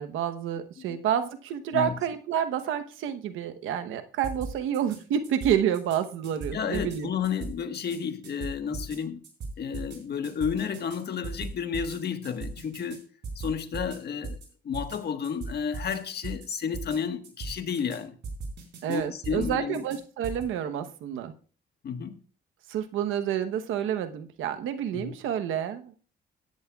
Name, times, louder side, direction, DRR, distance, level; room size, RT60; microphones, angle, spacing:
voice 1, 0.0-7.1 18.8-21.3 22.7-25.9, right 9 dB, 85° right, 1.0 m, -29 dB
sound 1, 4.2-5.0 5.2-6.0 6.2-7.0 7.2-8.0 8.2-9.0 9.2-10.0 10.2-11.0 11.2-12.0 12.2-13.0 13.2-14.0 14.2-14.5 14.7-15.0 15.2-16.0 16.2-16.5 16.7-17.0 17.2-18.0 18.2-19.0 19.2-20.0 20.2-20.4, right 3 dB, 65° right, 4.4 m, -37 dB
voice 2, 6.5-9.2 9.6-13.0 13.3-14.4 14.6-18.2 18.9-19.8 21.8-22.2 24.9-25.1, left 7 dB, 55° left, 1.4 m, -31 dB
16.5 x 10.5 x 2.4 m
cardioid pair, 90°, 20 cm